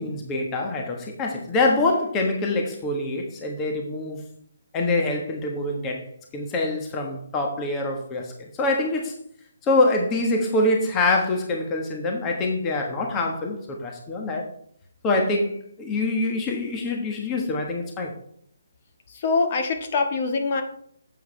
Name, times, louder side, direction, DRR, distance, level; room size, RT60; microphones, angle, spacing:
voice 1, 0.0-4.2 4.7-6.1 6.3-9.1 9.6-14.5 15.0-18.1, left 2 dB, 20° left, 1 dB, 1.4 m, -25 dB
voice 2, 19.2-20.6, left 4 dB, 40° left, 4 dB, 1.6 m, -23 dB
10.0 x 8.1 x 3.4 m, 0.64 s
figure-of-eight pair, 150°, 0 cm